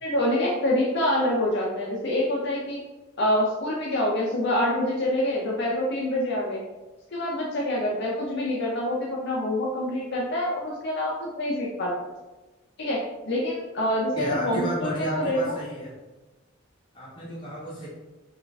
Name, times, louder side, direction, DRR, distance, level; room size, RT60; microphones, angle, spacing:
voice 1, 0.0-2.8 3.2-6.6 7.1-12.1 12.8-15.6, left 1 dB, 55° left, -4 dB, 0.6 m, -26 dB
voice 2, 14.2-15.9 16.9-17.9, equal, 25° left, -6 dB, 1.3 m, -32 dB
4.3 x 2.4 x 3.4 m, 1.1 s
head